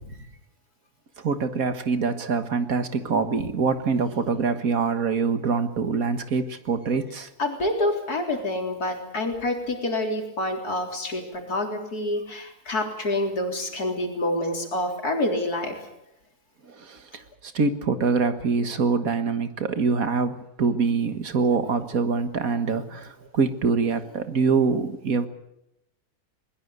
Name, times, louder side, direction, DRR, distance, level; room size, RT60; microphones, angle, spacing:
voice 1, 1.2-7.3 16.6-25.3, right 5 dB, 65° right, 9 dB, 2.0 m, -25 dB
voice 2, 7.4-15.8, left 1 dB, 80° left, 3 dB, 4.2 m, -27 dB
21.5 x 20.5 x 8.1 m, 0.84 s
omnidirectional pair, 1.6 m